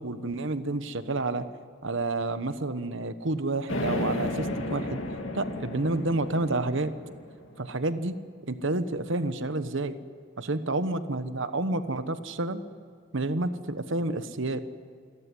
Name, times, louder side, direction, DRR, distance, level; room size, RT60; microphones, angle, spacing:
voice 1, 0.0-1.5 1.8-5.0 5.3-6.9 7.6-8.2 8.5-10.0 10.4-12.6 13.1-14.6, right 2 dB, 55° right, 11 dB, 1.1 m, -29 dB
sound 1, 3.7-7.6, left 1 dB, 60° left, 2.6 m, -33 dB
28.5 x 14.5 x 9.8 m, 2.1 s
head